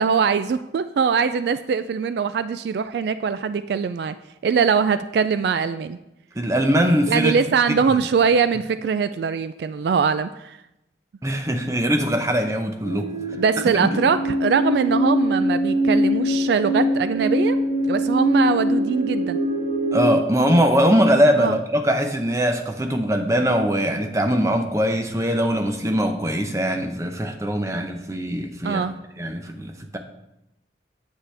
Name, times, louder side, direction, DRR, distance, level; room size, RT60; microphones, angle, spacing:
voice 1, 0.0-4.1 4.4-6.0 7.1-10.6 13.3-17.6 17.9-19.4 21.4-21.6 28.6-29.0, right 6 dB, 65° right, 12 dB, 0.3 m, -22 dB
voice 2, 6.4-7.4 7.9-8.0 11.2-13.1 13.7-14.0 19.9-28.9 29.2-30.0, equal, 15° right, 5 dB, 0.7 m, -21 dB
sound 1, 12.8-20.2, equal, 90° right, 3.3 m, -22 dB
8.8 x 8.1 x 3.3 m, 0.88 s
head